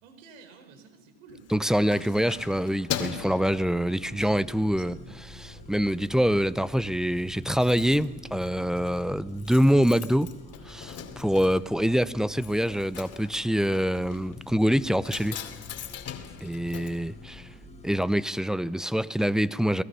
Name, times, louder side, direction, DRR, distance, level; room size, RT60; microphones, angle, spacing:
voice 1, 0.0-1.5 3.4-4.9, right 5 dB, 80° right, 4.5 m, -52 dB
Keys jangling, 1.3-4.4 4.8-5.1 5.4-6.1 6.4-6.5 6.7-6.8 7.0-17.8 18.1-18.2, left 9 dB, 40° left, 2.5 m, -41 dB
voice 2, 1.5-5.0 5.3-10.3 10.7-15.4 16.4-17.5 17.8-19.8, equal, ahead, 0.6 m, -25 dB
sound 1, 1.8-18.0, left 2 dB, 15° left, 2.1 m, -47 dB
29.0 x 19.0 x 5.6 m
supercardioid pair, 95°, 38 cm